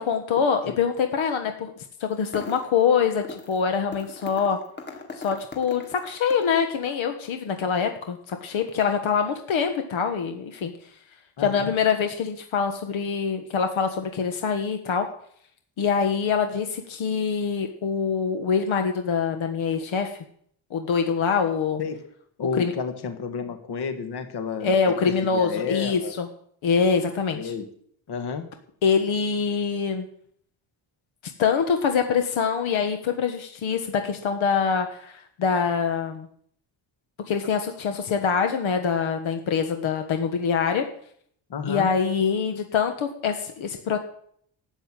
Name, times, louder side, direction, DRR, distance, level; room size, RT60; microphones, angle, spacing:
voice 1, 0.0-1.7 2.0-4.6 5.1-10.7 11.4-15.1 15.8-20.1 20.7-21.8 22.6-22.7 24.6-26.3 26.6-27.5 28.8-30.1 31.4-36.3 37.3-40.8 41.6-44.0, left 6 dB, 70° left, 6 dB, 1.5 m, -24 dB
sound 1, 2.1-2.8 3.2-3.6 3.9-6.6, left 3 dB, 20° left, 2.2 m, -40 dB
voice 2, 11.4-11.7 21.8-22.0 22.4-26.1 27.3-27.7 28.1-28.5 41.5-41.9, left 6 dB, 55° left, 7 dB, 1.8 m, -31 dB
13.0 x 8.0 x 9.0 m, 0.64 s
wide cardioid pair, 175°, 49 cm